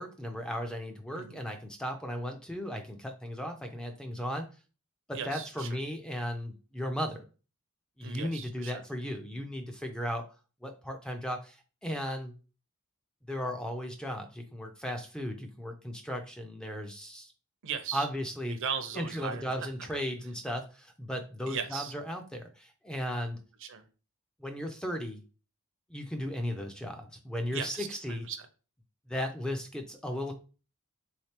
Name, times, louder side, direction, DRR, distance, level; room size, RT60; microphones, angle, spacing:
voice 1, 0.0-4.5 5.1-7.2 8.0-10.3 10.6-12.4 13.3-17.3 17.9-18.6 18.9-23.4 24.4-25.2 25.9-28.3 29.1-30.3, equal, 5° left, 0.3 m, -36 dB
voice 2, 5.1-5.8 8.0-8.8 17.6-18.1 18.4-19.5 21.5-21.9 23.6-23.9 27.5-28.5, right 7 dB, 60° right, 0.5 m, -38 dB
3.4 x 3.2 x 2.8 m
head